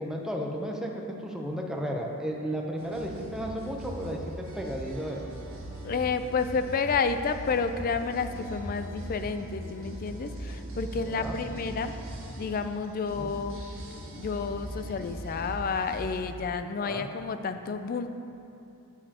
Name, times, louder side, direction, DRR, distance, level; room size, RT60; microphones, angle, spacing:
voice 1, 0.0-5.2 11.0-11.4 13.2-13.3 16.8-17.0, equal, 5° right, -1 dB, 0.6 m, -34 dB
sound 1, 2.8-16.2, equal, 60° right, 1.5 m, -40 dB
voice 2, 5.8-11.9 12.4-13.6 14.1-18.1, left 5 dB, 40° left, 9 dB, 0.4 m, -30 dB
11.5 x 7.3 x 2.9 m, 2.8 s
head